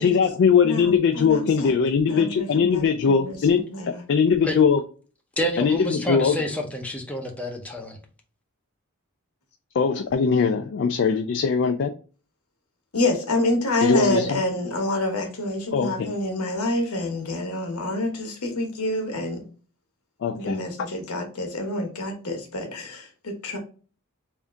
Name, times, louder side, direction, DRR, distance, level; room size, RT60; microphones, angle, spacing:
voice 1, 0.0-3.6 4.1-4.8 5.6-6.3 9.8-11.9 13.8-14.4 15.7-16.1 20.2-20.6, left 6 dB, 55° left, 0.3 m, -21 dB
voice 2, 0.6-1.7 2.1-4.0 12.9-19.4 20.3-23.6, left 2 dB, 80° left, 1.1 m, -27 dB
voice 3, 5.4-8.0, equal, 5° left, 0.6 m, -28 dB
3.6 x 2.7 x 3.4 m
head